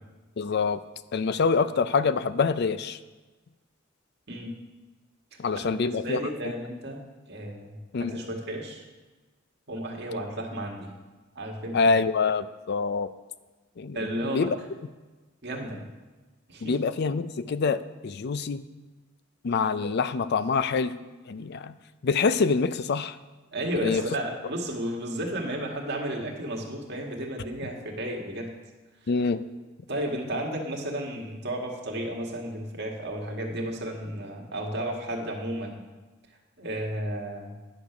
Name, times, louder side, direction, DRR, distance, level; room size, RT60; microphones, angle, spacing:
voice 1, 0.4-0.8 1.1-3.0 5.4-6.2 7.9-8.2 11.7-13.1 13.8-14.5 16.6-18.6 19.4-20.9 21.3-21.7 22.0-23.1 23.8-24.0 29.1-29.4, left 4 dB, 55° left, 14 dB, 0.4 m, -25 dB
voice 2, 5.6-8.8 9.7-10.9 11.4-11.9 13.9-14.5 15.4-15.8 16.5-16.8 23.5-28.5 29.9-35.8 36.6-37.5, right 1 dB, 60° right, 0 dB, 1.8 m, -33 dB
10.5 x 6.7 x 5.9 m, 1.2 s
head